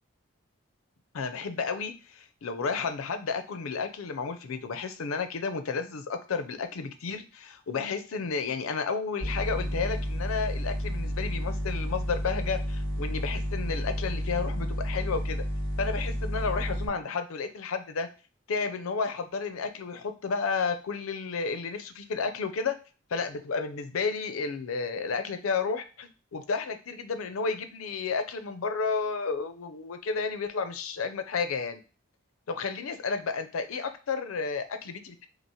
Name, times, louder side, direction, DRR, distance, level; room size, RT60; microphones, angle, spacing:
voice 1, 1.1-15.4 15.8-18.1 18.5-22.7 23.1-31.8 32.5-35.3, left 5 dB, 80° left, 9 dB, 0.5 m, -32 dB
sound 1, 9.2-16.9, equal, 55° right, 2.1 m, -31 dB
5.7 x 2.0 x 2.8 m, 0.34 s
head